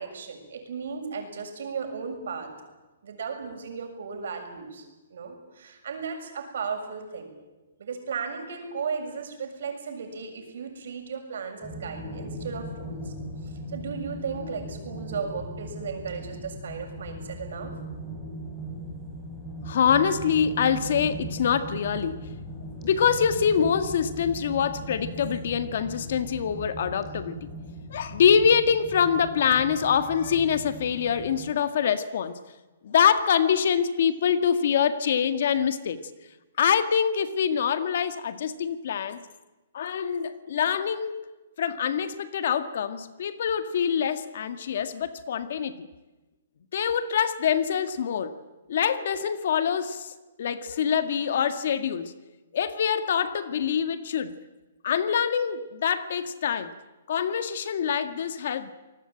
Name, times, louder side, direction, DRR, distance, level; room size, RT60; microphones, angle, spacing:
voice 1, 0.0-2.5 3.0-4.8 5.1-7.3 7.8-13.1 13.4-17.7, right 5 dB, 65° right, 4 dB, 6.9 m, -35 dB
sound 1, 11.6-31.5, right 1 dB, 10° left, 5.7 m, -38 dB
voice 2, 19.7-22.3 22.8-27.5 27.9-32.4 32.8-36.0 36.6-39.2 39.7-41.2 41.6-45.9 46.7-48.4 48.7-52.1 52.5-54.3 54.8-56.7 57.1-58.7, left 7 dB, 55° left, 11 dB, 1.7 m, -25 dB
27.0 x 19.5 x 8.9 m, 1.1 s
hypercardioid pair, 165°, 0 cm